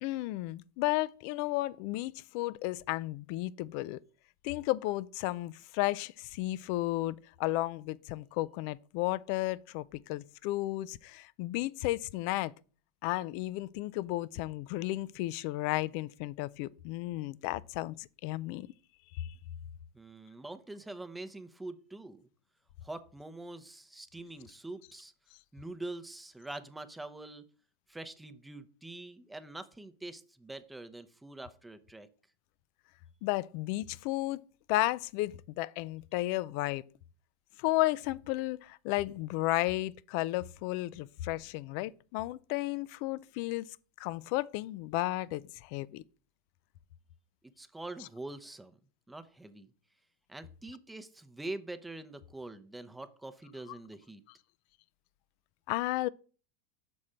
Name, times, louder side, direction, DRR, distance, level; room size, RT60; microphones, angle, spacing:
voice 1, 0.0-4.0 4.4-12.5 13.0-18.7 19.1-19.3 33.2-34.4 34.7-36.8 37.6-43.7 44.0-46.0 55.7-56.1, left 17 dB, 60° left, 0.3 m, -33 dB
voice 2, 19.9-22.2 22.8-25.1 25.5-27.4 27.9-32.1 47.6-48.7 49.1-49.7 50.3-54.2, right 2 dB, 10° right, 0.6 m, -44 dB
6.2 x 4.2 x 5.0 m
hypercardioid pair, 90°, 0 cm